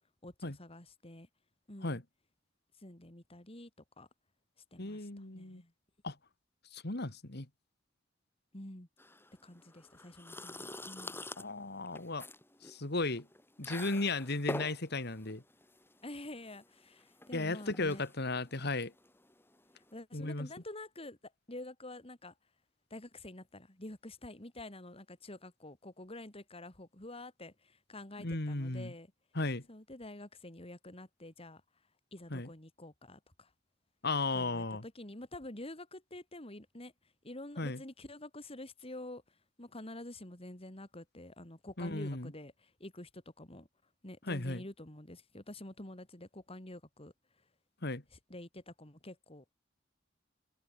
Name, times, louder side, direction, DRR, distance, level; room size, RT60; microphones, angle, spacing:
voice 1, 0.2-1.3 1.7-2.0 2.8-3.7 4.0-4.1 4.7-5.1 5.3-5.7 8.5-8.9 9.4-11.1 16.0-18.0 19.9-21.2 21.5-22.3 22.9-29.1 29.7-31.6 32.1-33.5 34.3-36.9 37.2-39.2 39.6-43.7 44.0-47.1 48.1-49.5, left 1 dB, 30° left, 3.3 m, -48 dB
voice 2, 4.8-5.6 6.0-6.1 6.7-7.5 11.4-12.3 12.6-13.3 13.6-15.4 17.3-18.9 20.1-20.5 28.2-28.9 29.3-29.6 32.3-32.5 34.0-34.8 37.6-37.8 41.8-42.3 44.3-44.6 47.8-48.0, left 2 dB, 60° left, 2.5 m, -35 dB
sound 1, 9.0-19.9, left 1 dB, 10° left, 5.8 m, -47 dB
open air
head